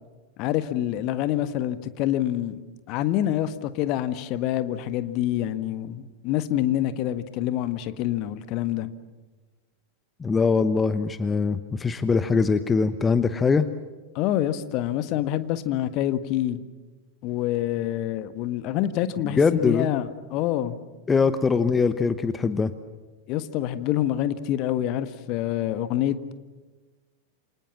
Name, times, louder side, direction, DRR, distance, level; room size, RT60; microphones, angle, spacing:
voice 1, 0.4-2.6 2.9-8.9 14.1-16.6 17.2-20.8 23.3-26.3, left 12 dB, 40° left, 12 dB, 1.5 m, -26 dB
voice 2, 10.2-13.7 19.2-19.9 21.1-22.7, left 5 dB, 15° left, 12 dB, 1.0 m, -22 dB
28.5 x 26.0 x 7.3 m, 1.3 s
figure-of-eight pair, 90°, 0 cm